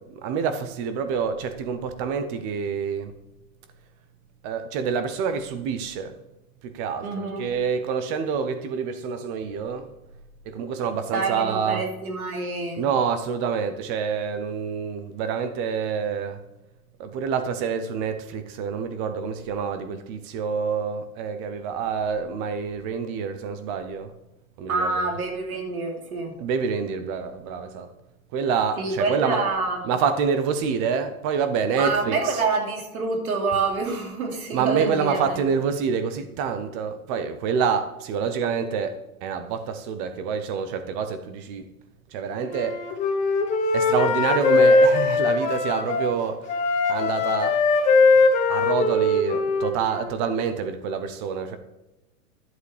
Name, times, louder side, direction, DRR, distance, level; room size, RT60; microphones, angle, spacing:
voice 1, 0.0-3.1 4.4-6.2 6.6-9.9 10.5-11.8 12.7-16.4 17.0-24.1 24.6-25.1 26.4-27.9 28.3-29.5 29.8-32.4 34.5-41.7 42.1-42.8 43.7-46.6 46.9-47.6 48.5-51.6, right 6 dB, 20° right, 0.5 m, -27 dB
voice 2, 7.0-7.5 11.1-12.9 24.7-26.3 28.8-29.8 31.8-35.4, right 3 dB, 80° right, 2.7 m, -27 dB
Wind instrument woodwind instrument, 42.5-46.1 46.5-50.1, left 3 dB, 15° left, 1.0 m, -21 dB
11.0 x 7.7 x 3.3 m
hypercardioid pair, 145°, 43 cm